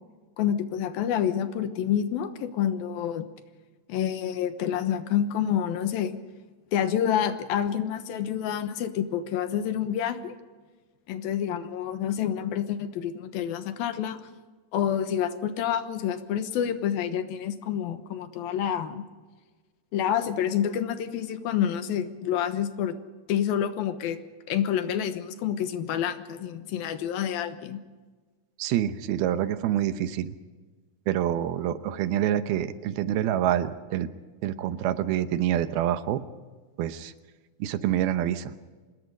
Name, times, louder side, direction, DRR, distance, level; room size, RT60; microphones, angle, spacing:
voice 1, 0.4-3.3 3.9-6.2 6.7-10.4 11.1-14.2 14.7-19.0 19.9-23.0 23.3-24.2 24.5-27.8, left 9 dB, 80° left, 10 dB, 2.9 m, -28 dB
voice 2, 28.6-30.4 31.1-34.1 34.4-36.2 36.8-37.1 37.6-38.5, right 11 dB, 85° right, 11 dB, 2.9 m, -26 dB
25.5 x 21.0 x 5.3 m, 1.4 s
omnidirectional pair, 4.3 m